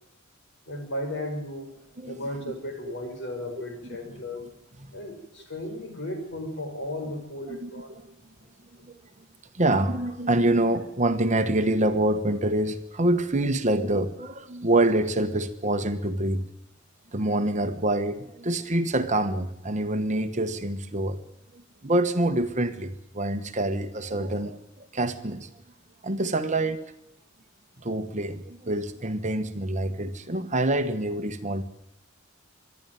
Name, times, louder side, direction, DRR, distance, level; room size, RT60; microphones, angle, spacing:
voice 1, 0.7-1.7 2.1-4.4 4.9-7.9, left 1 dB, 60° left, 4 dB, 5.6 m, -35 dB
voice 2, 2.0-2.4 4.1-4.2 7.5-8.0 9.5-16.4 17.1-21.2 21.8-25.5 26.0-26.8 27.8-31.6, right 1 dB, 35° right, 9 dB, 1.2 m, -26 dB
26.0 x 11.0 x 9.2 m, 0.81 s
head